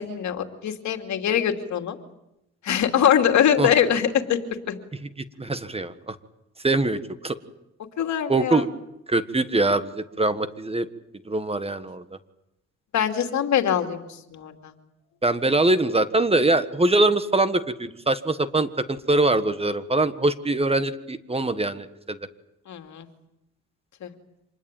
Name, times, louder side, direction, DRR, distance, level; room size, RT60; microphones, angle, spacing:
voice 1, 0.0-2.0 2.6-4.4 4.7-4.8 8.0-8.6 12.9-14.0 14.3-14.7 22.7-23.0 24.0-24.1, left 9 dB, 70° left, 5 dB, 2.7 m, -23 dB
voice 2, 5.4-6.1 6.6-7.3 8.3-8.7 9.1-10.9 11.3-12.0 15.2-22.2, right 2 dB, 20° right, 12 dB, 1.5 m, -23 dB
26.5 x 20.5 x 9.1 m, 0.86 s
cardioid pair, 90°, 30 cm